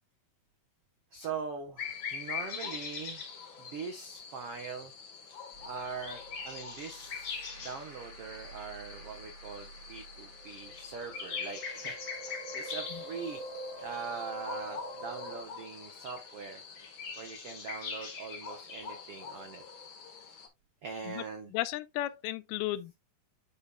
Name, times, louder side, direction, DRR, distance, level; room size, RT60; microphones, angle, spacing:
voice 1, 1.1-4.9 5.6-12.0 12.5-13.4 13.8-16.6 17.2-19.6 20.8-21.5, right 5 dB, 85° right, 1.3 m, -42 dB
sound 1, 1.8-20.5, left 6 dB, 50° left, 1.5 m, -43 dB
sound 2, 5.5-15.4, right 1 dB, 20° right, 2.1 m, -47 dB
voice 2, 21.5-22.9, left 15 dB, 90° left, 2.6 m, -34 dB
10.0 x 5.7 x 2.2 m
omnidirectional pair, 4.3 m